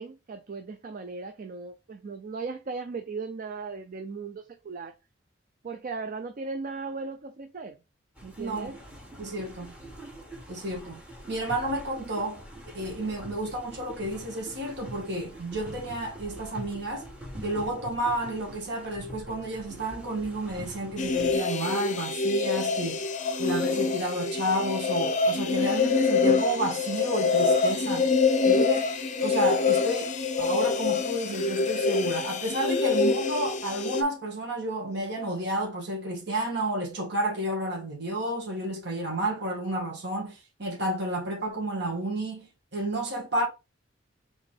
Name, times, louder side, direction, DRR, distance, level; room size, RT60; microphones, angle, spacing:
voice 1, 0.0-4.9 5.6-7.8 8.2-8.8, right 4 dB, 45° right, 0.4 m, -37 dB
sound 1, 8.1-21.4, equal, 5° right, 1.4 m, -44 dB
voice 2, 8.4-8.7 9.2-9.7 10.5-12.4 12.7-17.1 17.4-23.0 23.4-28.1 28.5-28.9 29.2-43.5, right 1 dB, 60° right, 1.8 m, -31 dB
sound 2, 21.0-34.0, left 4 dB, 40° left, 0.6 m, -25 dB
3.9 x 3.6 x 3.4 m
head